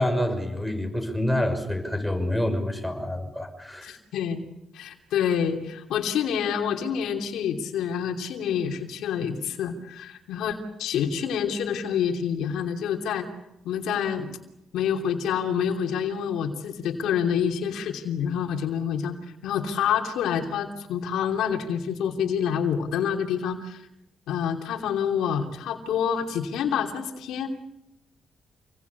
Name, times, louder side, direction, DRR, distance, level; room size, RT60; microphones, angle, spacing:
voice 1, 0.0-3.9, left 1 dB, ahead, 7 dB, 6.0 m, -27 dB
voice 2, 3.8-4.4 4.7-13.3 13.6-14.3 14.7-19.1 19.4-23.8 24.3-27.5, left 8 dB, 90° left, 4 dB, 3.0 m, -27 dB
28.0 x 21.5 x 8.3 m, 0.87 s
cardioid pair, 90°, 0 cm